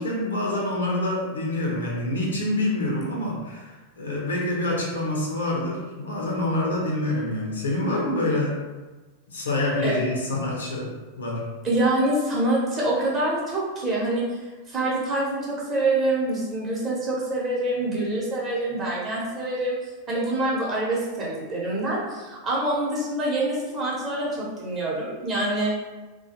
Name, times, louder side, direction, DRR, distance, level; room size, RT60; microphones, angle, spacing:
voice 1, 0.0-8.6 9.3-11.5, left 1 dB, 70° left, -3 dB, 0.6 m, -26 dB
voice 2, 11.6-14.2 14.7-19.7 20.1-25.7, right 2 dB, 25° right, -5 dB, 0.9 m, -25 dB
2.3 x 2.2 x 2.8 m, 1.2 s
figure-of-eight pair, 90°, 0 cm